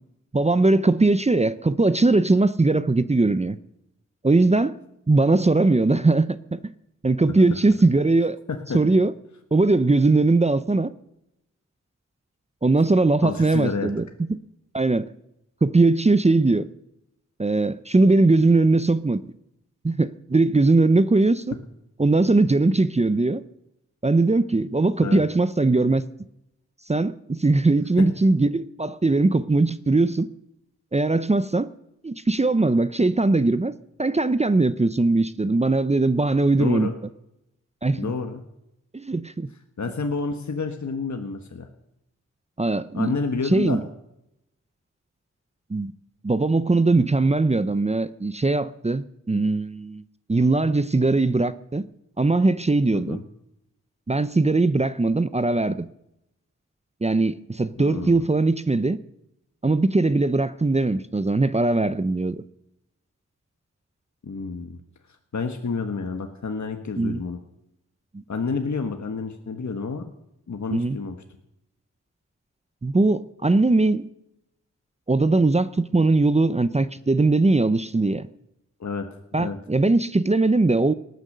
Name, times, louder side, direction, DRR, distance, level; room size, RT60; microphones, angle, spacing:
voice 1, 0.3-3.6 4.2-4.7 5.1-6.6 7.0-8.4 8.7-9.1 9.5-10.9 12.6-14.1 14.7-15.0 15.6-16.7 17.4-19.2 19.8-21.5 22.0-23.4 24.0-26.0 26.9-30.3 30.9-31.7 32.0-33.7 34.0-36.9 37.8-38.1 38.9-39.5 42.6-43.1 43.5-43.8 45.7-45.9 46.2-50.0 50.3-51.9 52.2-53.2 54.1-55.8 57.0-59.0 59.6-62.4 67.0-67.2 70.7-71.0 72.8-74.1 75.1-78.3 79.3-80.9, right 3 dB, 20° right, 0.6 m, -20 dB
voice 2, 8.5-8.8 13.2-13.9 25.0-25.2 28.0-28.1 36.6-36.9 38.0-38.4 39.8-41.7 42.9-43.8 52.9-53.2 57.8-58.2 64.2-64.8 65.3-67.4 68.3-70.1 70.5-71.2 78.8-79.1 79.3-79.6, left 4 dB, 70° left, 1.4 m, -29 dB
19.0 x 9.3 x 6.7 m
wide cardioid pair, 85°, 29 cm